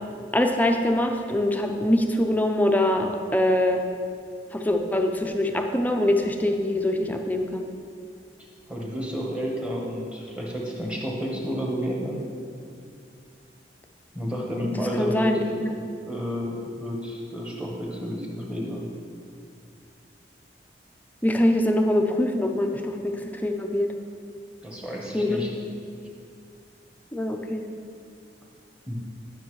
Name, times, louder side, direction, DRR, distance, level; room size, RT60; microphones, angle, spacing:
voice 1, 0.3-3.8 4.5-7.7 15.0-15.7 21.2-23.9 25.1-25.4 27.1-27.7, left 1 dB, 10° left, 4 dB, 0.4 m, -23 dB
voice 2, 8.7-12.2 14.1-15.7 16.0-18.8 24.6-25.5 28.9-29.0, equal, 5° right, -2 dB, 1.1 m, -31 dB
10.0 x 6.2 x 3.1 m, 2.3 s
head